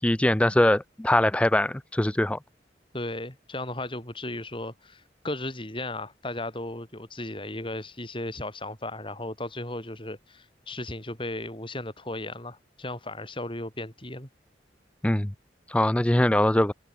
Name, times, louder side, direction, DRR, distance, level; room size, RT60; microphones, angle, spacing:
voice 1, 0.0-2.4 15.0-15.3 15.7-16.7, left 1 dB, 5° left, 0.4 m, -22 dB
voice 2, 2.9-14.3, left 1 dB, 30° left, 7.0 m, -35 dB
head